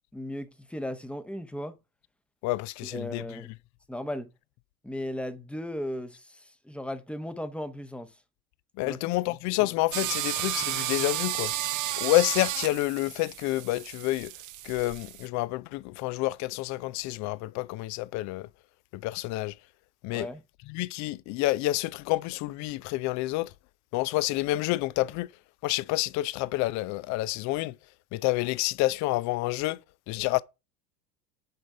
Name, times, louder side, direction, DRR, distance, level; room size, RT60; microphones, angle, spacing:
voice 1, 0.1-1.8 2.8-3.5 3.9-4.3 4.8-8.2 8.8-9.0 20.1-20.4, left 1 dB, ahead, 0.8 m, -36 dB
voice 2, 2.4-3.2 8.8-11.5 12.0-14.3 14.6-18.5 18.9-19.5 20.0-20.3 20.7-23.5 23.9-25.3 25.6-27.7 28.1-29.8 30.1-30.4, left 18 dB, 40° left, 0.4 m, -28 dB
sound 1, 9.9-15.3, right 13 dB, 40° right, 0.8 m, -32 dB
6.7 x 5.3 x 4.7 m
figure-of-eight pair, 75°, 47 cm